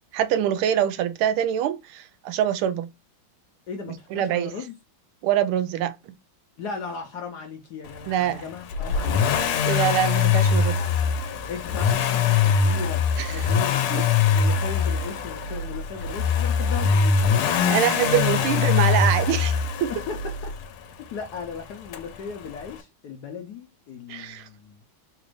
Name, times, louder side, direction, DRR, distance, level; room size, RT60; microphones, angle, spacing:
voice 1, 0.1-2.9 4.1-4.5 5.2-5.9 8.1-8.4 9.6-10.8 13.2-13.3 13.9-14.0 17.6-19.5 19.8-19.9 24.1-24.5, right 10 dB, 85° right, 1.5 m, -24 dB
voice 2, 3.7-4.8 6.6-9.2 11.5-13.9 14.3-18.5 19.9-20.5 21.1-24.8, left 5 dB, 70° left, 1.0 m, -37 dB
Accelerating revving vroom, 8.7-20.6 21.9-22.0, left 6 dB, 85° left, 1.5 m, -22 dB
4.1 x 2.5 x 3.0 m
omnidirectional pair, 2.3 m